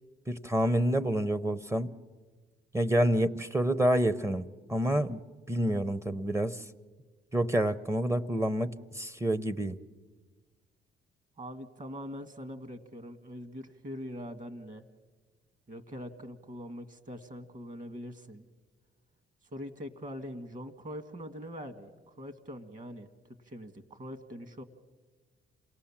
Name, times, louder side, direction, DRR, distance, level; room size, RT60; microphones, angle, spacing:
voice 1, 0.3-1.9 2.7-5.2 5.5-6.7 7.3-9.8, right 1 dB, 15° right, 16 dB, 0.7 m, -28 dB
voice 2, 11.4-14.8 15.7-18.5 19.5-24.6, equal, 40° right, 11 dB, 1.9 m, -43 dB
28.0 x 18.5 x 7.3 m, 1.3 s
cardioid pair, 90°, 20 cm